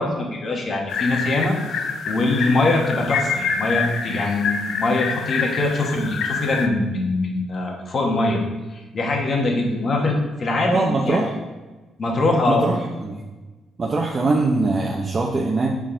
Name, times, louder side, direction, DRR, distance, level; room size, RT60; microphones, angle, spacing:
voice 1, 0.0-1.6 2.1-8.4 8.7-11.2 12.0-12.7, left 2 dB, 45° left, 1 dB, 1.3 m, -22 dB
sound 1, 0.9-6.7, left 6 dB, 75° left, 0.4 m, -27 dB
voice 2, 10.7-11.3 12.5-13.2 13.8-15.8, right 3 dB, 35° right, -2 dB, 0.7 m, -22 dB
6.0 x 4.2 x 3.8 m, 1.2 s
cardioid pair, 90°, 0 cm